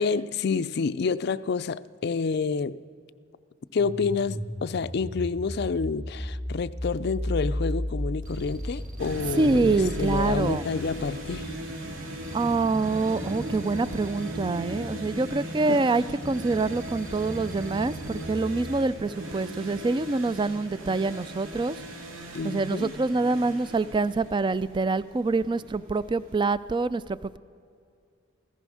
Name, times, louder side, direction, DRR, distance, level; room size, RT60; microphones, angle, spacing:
voice 1, 0.0-2.8 3.7-11.5 15.7-15.8 22.3-22.9, left 5 dB, 55° left, 0.4 m, -28 dB
sound 1, 3.8-12.5, equal, 5° right, 0.9 m, -34 dB
sound 2, 8.2-11.5 12.2-15.5 16.2-19.2, equal, 40° right, 1.4 m, -44 dB
sound 3, 9.0-26.4, equal, 90° right, 2.0 m, -38 dB
voice 2, 9.4-10.6 12.3-21.8 22.4-27.4, right 3 dB, 25° right, 0.3 m, -26 dB
15.5 x 14.5 x 6.3 m
head